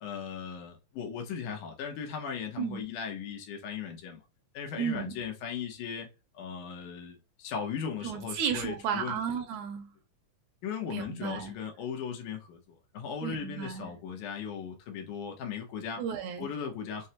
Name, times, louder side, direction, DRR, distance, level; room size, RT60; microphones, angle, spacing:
voice 1, 0.0-4.2 4.5-6.1 6.3-9.2 10.6-16.0 16.4-17.1, left 7 dB, 85° left, 2.5 m, -37 dB
voice 2, 4.8-5.2 8.0-9.9 10.9-11.5 13.2-13.9 16.0-16.5, right 7 dB, 80° right, 2.2 m, -33 dB
6.2 x 2.2 x 2.8 m
omnidirectional pair, 3.5 m